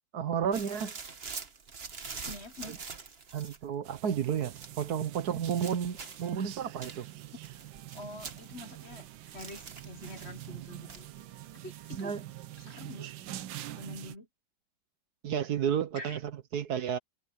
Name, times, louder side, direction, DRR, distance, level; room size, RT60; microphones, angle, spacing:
voice 1, 0.1-0.9 2.7-2.8 3.3-7.1 12.0-12.2 15.2-16.2 16.5-17.0, right 8 dB, 60° right, 1.4 m, -31 dB
sound 1, 0.5-3.7 4.5-4.9 5.4-6.4 6.8-9.1 9.4-10.5 10.9-11.2, right 5 dB, 35° right, 1.4 m, -45 dB
voice 2, 2.2-2.8 7.9-11.1 11.6-12.2 12.6-13.1 13.7-14.3 15.9-16.2, left 2 dB, 40° left, 1.3 m, -46 dB
sound 2, 3.8-14.2, right 13 dB, 85° right, 1.5 m, -45 dB
omnidirectional pair, 2.0 m